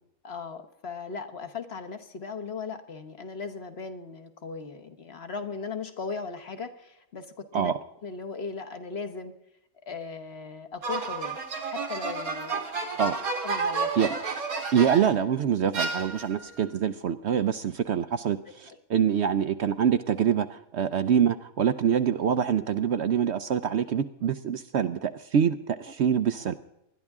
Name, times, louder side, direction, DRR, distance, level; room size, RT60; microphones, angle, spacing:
voice 1, 0.2-7.7 8.0-9.3 9.9-11.4 11.6-12.7 13.4-14.0 18.7-18.8, left 4 dB, 50° left, 7 dB, 1.3 m, -37 dB
sound 1, 10.8-15.2 15.7-16.5, right 4 dB, 90° right, 2.3 m, -31 dB
voice 2, 14.7-26.5, right 8 dB, 60° right, 11 dB, 0.8 m, -25 dB
20.0 x 12.0 x 3.6 m, 0.86 s
omnidirectional pair, 1.5 m